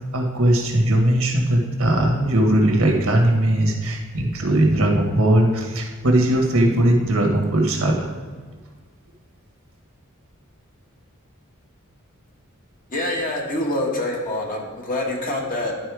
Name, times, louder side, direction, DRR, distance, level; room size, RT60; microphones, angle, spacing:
voice 1, 0.1-8.1, right 1 dB, 75° right, 1 dB, 1.5 m, -19 dB
voice 2, 12.9-15.7, left 1 dB, 40° left, -1 dB, 1.5 m, -25 dB
11.0 x 4.4 x 4.8 m, 1.5 s
head